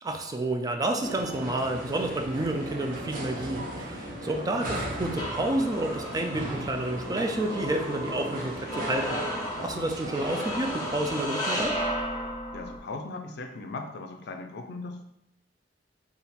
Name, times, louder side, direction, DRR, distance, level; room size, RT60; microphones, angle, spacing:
voice 1, 0.0-9.2 9.6-11.8, right 1 dB, 20° right, 4 dB, 0.3 m, -30 dB
sound 1, 1.0-11.3, right 1 dB, 50° right, 0.8 m, -37 dB
voice 2, 4.2-4.7 9.6-9.9 12.2-15.0, left 3 dB, 60° left, 5 dB, 0.4 m, -39 dB
sound 2, 4.3-12.8, equal, 20° left, 0.7 m, -34 dB
3.5 x 2.4 x 4.2 m, 0.82 s
head